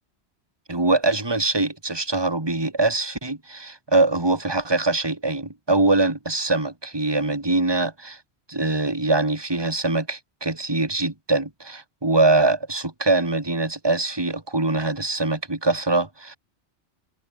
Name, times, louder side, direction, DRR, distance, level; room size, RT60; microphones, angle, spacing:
voice 1, 0.7-8.2 8.5-16.4, right 2 dB, 20° right, 2.5 m, -23 dB
omnidirectional pair, 1.2 m